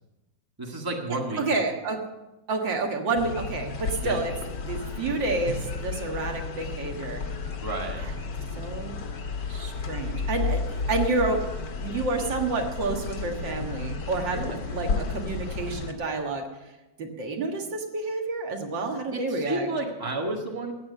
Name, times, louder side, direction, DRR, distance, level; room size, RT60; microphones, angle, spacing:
voice 1, 0.6-1.4 4.0-4.2 7.6-8.0 14.3-14.6 19.1-20.7, right 2 dB, 10° right, 1 dB, 1.6 m, -31 dB
voice 2, 1.4-2.0 2.5-4.3 4.6-7.2 8.0-8.1 8.6-9.0 9.5-11.5 11.8-14.4 14.7-16.5 17.0-19.7, right 3 dB, 80° right, 3 dB, 2.2 m, -29 dB
sound 1, 3.2-15.9, left 4 dB, 65° left, 2.0 m, -32 dB
14.5 x 8.9 x 6.8 m, 1.0 s
omnidirectional pair, 2.0 m